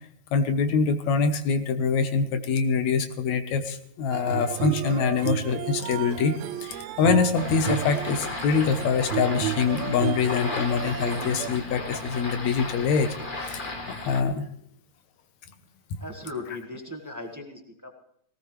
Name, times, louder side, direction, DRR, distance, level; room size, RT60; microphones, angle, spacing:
voice 1, 0.3-13.1 13.4-13.7 14.1-14.5, left 5 dB, 70° left, 9 dB, 2.4 m, -24 dB
sound 1, 4.1-11.5, right 13 dB, 80° right, 2.0 m, -32 dB
sound 2, 7.3-14.2, left 2 dB, 35° left, 0.8 m, -35 dB
voice 2, 16.0-17.9, left 2 dB, 10° right, 2 dB, 0.9 m, -38 dB
18.5 x 17.5 x 3.3 m, 0.71 s
omnidirectional pair, 3.4 m